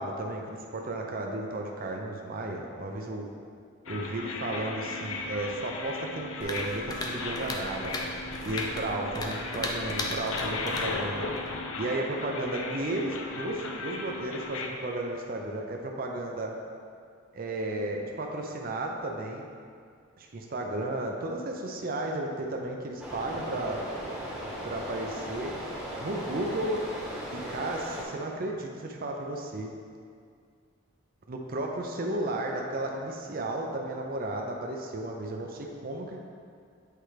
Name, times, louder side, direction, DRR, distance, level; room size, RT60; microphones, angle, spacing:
voice 1, 0.0-3.3 3.9-7.9 8.4-11.3 11.8-16.5 17.3-19.5 20.2-23.8 24.6-25.5 26.0-26.8 27.3-29.7 31.3-36.2, right 1 dB, 45° right, 1 dB, 0.5 m, -33 dB
sound 1, 3.9-14.7, left 3 dB, 70° left, 0.6 m, -36 dB
sound 2, 6.4-11.6, left 1 dB, 20° left, 0.5 m, -37 dB
sound 3, 23.0-28.0, equal, 5° right, 1.1 m, -37 dB
8.2 x 4.4 x 3.3 m, 2.2 s
head